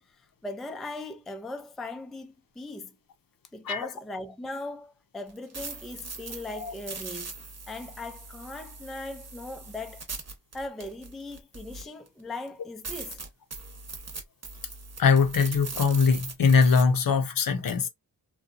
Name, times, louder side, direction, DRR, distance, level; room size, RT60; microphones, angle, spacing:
voice 1, 0.0-3.0 3.5-7.3 7.7-10.0 10.5-13.2, left 2 dB, ahead, 0.4 m, -39 dB
sound 1, 5.3-12.1 12.5-12.6 12.8-16.8, right 4 dB, 40° right, 0.9 m, -40 dB
voice 2, 15.0-17.9, left 5 dB, 55° left, 0.6 m, -22 dB
2.7 x 2.3 x 2.4 m
wide cardioid pair, 80°, 41 cm